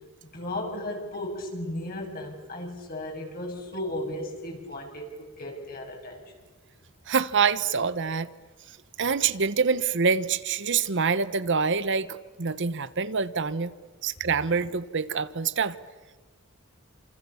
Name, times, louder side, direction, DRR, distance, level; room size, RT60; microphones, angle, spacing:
voice 1, 0.3-6.3, left 1 dB, 45° left, 1 dB, 7.5 m, -35 dB
voice 2, 7.1-8.3 9.0-13.7 14.0-15.8, right 5 dB, 55° right, 14 dB, 1.1 m, -26 dB
29.5 x 27.5 x 7.1 m, 1.4 s
head